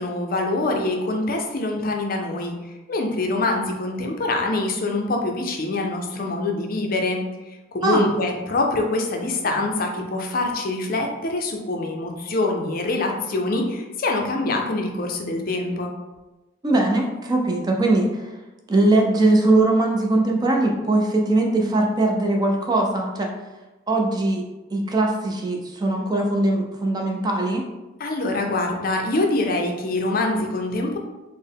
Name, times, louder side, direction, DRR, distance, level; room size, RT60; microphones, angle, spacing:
voice 1, 0.0-15.9 28.0-31.0, left 2 dB, 45° left, 2 dB, 0.5 m, -25 dB
voice 2, 16.6-18.3 18.7-23.3 23.9-24.4 24.7-27.7, right 2 dB, 20° right, 1 dB, 0.4 m, -20 dB
4.3 x 2.0 x 3.4 m, 1.1 s
head